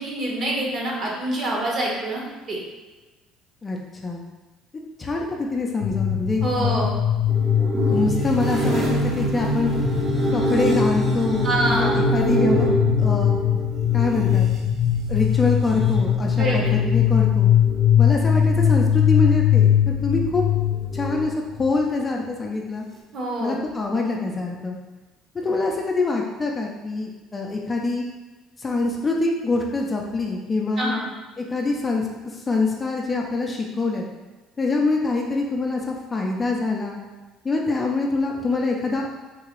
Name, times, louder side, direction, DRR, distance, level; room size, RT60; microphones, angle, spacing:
voice 1, 0.0-2.6 6.4-6.9 11.4-12.0 16.3-16.7 23.1-23.7 30.8-31.1, right 1 dB, 45° right, -3 dB, 1.0 m, -26 dB
voice 2, 3.6-4.2 5.0-6.8 7.9-9.7 10.3-12.7 13.0-13.4 13.9-14.5 15.1-17.5 18.0-20.4 20.9-22.9 23.4-24.7 25.3-28.0 28.6-30.9 31.4-34.0 34.6-37.0 37.4-39.2, left 3 dB, 25° left, 0 dB, 0.5 m, -25 dB
sound 1, 5.8-21.7, left 7 dB, 85° left, 0.4 m, -21 dB
sound 2, 7.3-14.6 15.5-17.1 17.4-18.1 20.5-21.4, equal, 25° right, 0.7 m, -27 dB
3.8 x 2.4 x 3.0 m, 1.2 s
supercardioid pair, 100°, 0 cm